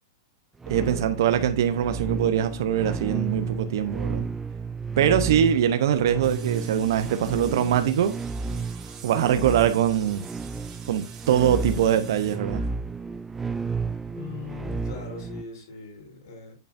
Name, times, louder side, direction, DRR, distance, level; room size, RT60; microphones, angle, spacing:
sound 1, 0.6-15.4, right 4 dB, 10° right, 0.4 m, -32 dB
voice 1, 0.7-4.2 5.0-8.2 9.0-10.3 10.9-12.6, right 9 dB, 70° right, 0.8 m, -23 dB
sound 2, 6.2-12.4, right 7 dB, 25° right, 1.7 m, -47 dB
voice 2, 14.1-16.5, left 4 dB, 75° left, 5.4 m, -40 dB
8.3 x 6.9 x 2.6 m
hypercardioid pair, 145°, 2 cm